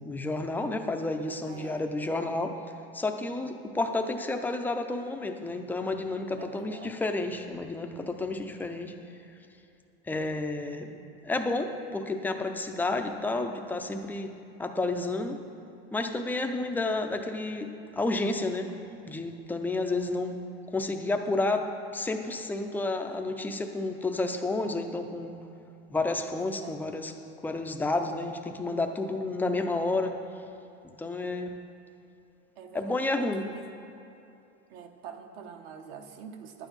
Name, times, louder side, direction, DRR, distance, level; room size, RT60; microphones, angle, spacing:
voice 1, 0.0-2.6 2.9-8.9 10.1-10.9 11.2-14.3 14.6-15.4 15.9-18.7 19.1-20.4 20.7-25.4 25.9-27.1 27.4-30.2 30.8-31.5 32.7-33.5, left 2 dB, 5° left, 4 dB, 0.4 m, -31 dB
voice 2, 1.4-1.8 6.4-7.0 26.4-26.8 32.6-33.0 33.4-33.7 34.7-36.7, right 7 dB, 70° right, 5 dB, 1.2 m, -45 dB
11.5 x 9.3 x 5.3 m, 2.7 s
supercardioid pair, 150°, 32 cm